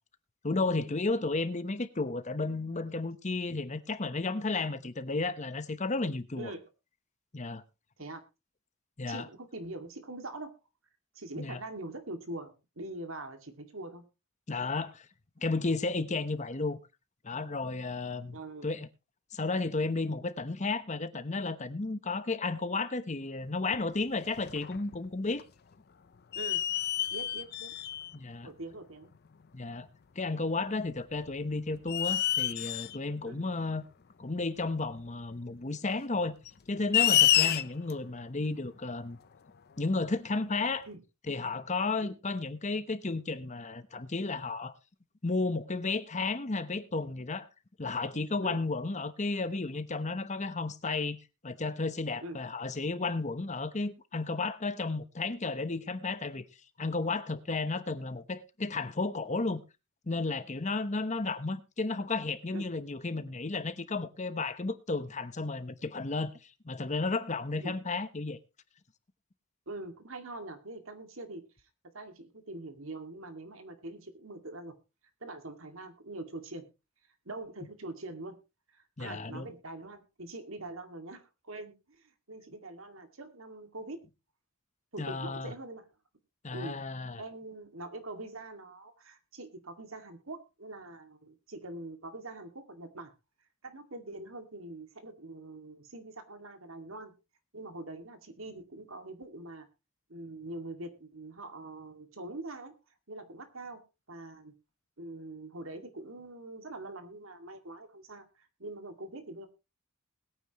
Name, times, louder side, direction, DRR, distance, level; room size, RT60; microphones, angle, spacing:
voice 1, 0.4-6.5 7.3-7.6 9.0-9.3 11.4-11.6 14.5-15.1 15.4-16.8 17.2-18.9 19.3-25.4 28.1-28.5 29.5-29.9 30.2-33.8 34.2-36.4 36.7-39.2 39.8-40.9 41.3-44.7 45.2-47.5 47.8-51.2 51.4-56.4 56.8-59.6 60.1-66.3 66.6-68.4 79.0-79.5 85.0-85.5 86.4-87.2, left 3 dB, 35° left, 0.9 m, -33 dB
voice 2, 9.1-10.5 11.1-14.0 18.3-18.7 26.3-26.6 27.1-27.7 28.4-29.1 33.2-33.4 37.4-37.6 40.9-41.0 42.0-42.2 48.4-48.6 52.2-52.4 62.5-62.6 67.6-67.7 69.7-71.5 71.9-74.8 75.2-76.7 77.3-78.4 78.7-84.0 84.9-85.9 86.5-86.8 87.2-93.1 93.6-97.1 97.5-99.7 100.1-102.7 103.1-103.8 104.1-104.5 105.0-109.5, right 2 dB, 70° right, 2.2 m, -43 dB
sound 1, 23.7-23.8 24.3-25.1 25.4-25.5 26.3-28.1 29.1-29.2 31.1-31.3 31.9-33.0 34.8-34.9 36.4-37.9, left 12 dB, 50° left, 0.5 m, -28 dB
21.0 x 9.2 x 3.0 m
head